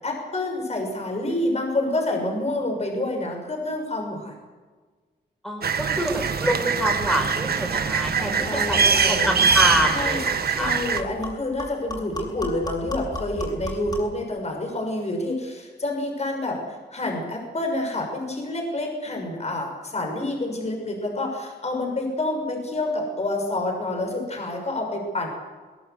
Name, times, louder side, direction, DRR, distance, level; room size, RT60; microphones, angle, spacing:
voice 1, 0.0-4.3 8.4-9.3 9.9-25.3, left 2 dB, 40° left, 2 dB, 6.4 m, -28 dB
voice 2, 5.4-10.7, right 1 dB, ahead, 3 dB, 6.2 m, -26 dB
sound 1, 5.6-11.0, right 5 dB, 60° right, 1.6 m, -23 dB
sound 2, 7.2-7.3 7.6-7.8 8.2-14.2, left 1 dB, 25° left, 7.5 m, -35 dB
22.5 x 22.0 x 8.0 m, 1.4 s
wide cardioid pair, 125°, 18 cm